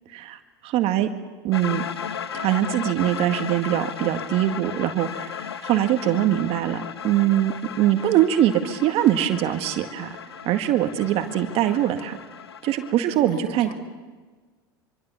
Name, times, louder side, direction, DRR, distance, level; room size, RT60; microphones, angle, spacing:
voice 1, 0.1-1.1 1.4-1.8 2.3-10.1 10.5-12.1 12.6-13.7, right 12 dB, 50° right, 7 dB, 1.8 m, -22 dB
sound 1, 1.5-12.9, left 7 dB, 85° left, 1.1 m, -35 dB
voice 2, 6.0-6.5 11.2-12.0 13.1-13.7, left 1 dB, 40° left, 8 dB, 4.8 m, -39 dB
25.0 x 24.5 x 7.0 m, 1.4 s
hypercardioid pair, 80°, 13 cm